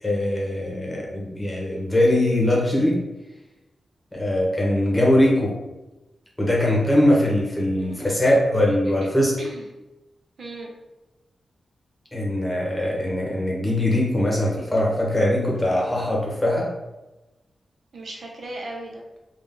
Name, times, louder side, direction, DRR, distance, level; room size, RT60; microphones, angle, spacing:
voice 1, 0.0-3.0 4.1-5.6 6.4-9.3 12.1-16.7, left 1 dB, 10° left, -4 dB, 1.0 m, -21 dB
voice 2, 7.8-8.1 9.4-9.7 10.4-10.8 17.9-19.0, right 2 dB, 60° right, 0 dB, 0.6 m, -37 dB
3.5 x 2.4 x 3.7 m, 1.1 s
wide cardioid pair, 120°, 0 cm